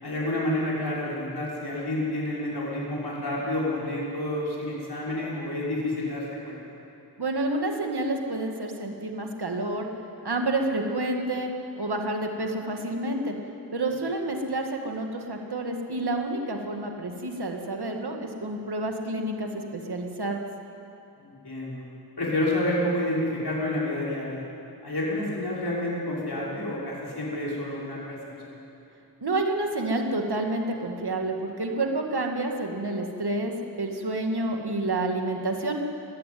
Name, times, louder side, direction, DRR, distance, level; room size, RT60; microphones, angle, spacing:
voice 1, 0.0-6.6 21.2-21.8 22.2-24.4 24.8-28.2 28.4-28.5, left 1 dB, 80° left, -5 dB, 5.7 m, -29 dB
voice 2, 7.2-9.9 10.2-11.5 11.8-13.3 13.7-20.4 29.2-35.8, right 2 dB, 80° right, 3 dB, 2.0 m, -29 dB
19.5 x 15.5 x 9.4 m, 2.8 s
wide cardioid pair, 50°, 38 cm